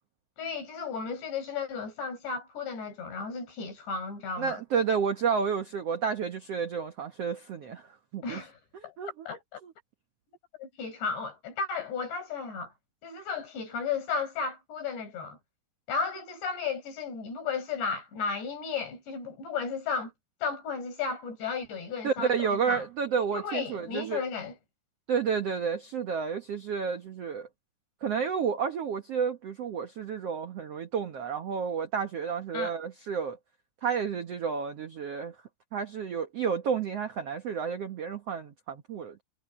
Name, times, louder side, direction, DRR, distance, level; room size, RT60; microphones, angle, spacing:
voice 1, 0.4-4.6 8.2-8.9 9.3-9.6 10.6-12.7 13.0-15.4 15.9-20.1 20.4-22.9 23.3-24.6 32.5-32.7, left 5 dB, 85° left, 7.5 m, -34 dB
voice 2, 4.4-7.8 8.1-8.4 8.7-9.3 9.6-9.7 22.0-24.2 25.1-27.5 28.0-33.4 33.8-35.3 35.7-39.2, right 6 dB, 80° right, 1.3 m, -31 dB
omnidirectional pair, 4.8 m